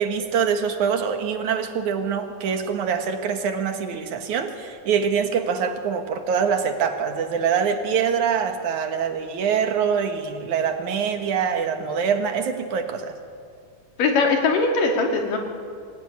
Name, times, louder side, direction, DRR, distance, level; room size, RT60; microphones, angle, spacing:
voice 1, 0.0-13.1, right 7 dB, 65° right, 6 dB, 3.0 m, -24 dB
voice 2, 14.0-15.4, left 3 dB, 80° left, 2 dB, 4.1 m, -20 dB
25.0 x 17.0 x 9.7 m, 2.3 s
omnidirectional pair, 3.8 m